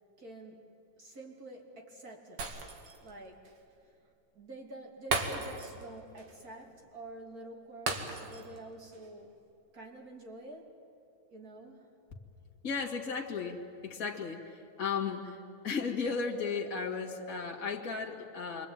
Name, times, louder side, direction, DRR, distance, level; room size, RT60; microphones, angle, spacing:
voice 1, 0.2-0.6 1.0-2.7 3.0-3.6 3.8-3.9 4.3-9.4 9.7-10.7 11.3-11.9, right 1 dB, 40° right, 1 dB, 3.3 m, -48 dB
Shatter, 2.4-3.1 3.5-3.6 5.1-5.9 6.2-6.3 7.9-8.6 8.9-9.1, right 3 dB, 90° right, 3.1 m, -35 dB
voice 2, 12.6-18.7, left 5 dB, 40° left, 0 dB, 2.4 m, -35 dB
27.5 x 24.0 x 9.1 m, 2.8 s
omnidirectional pair, 2.4 m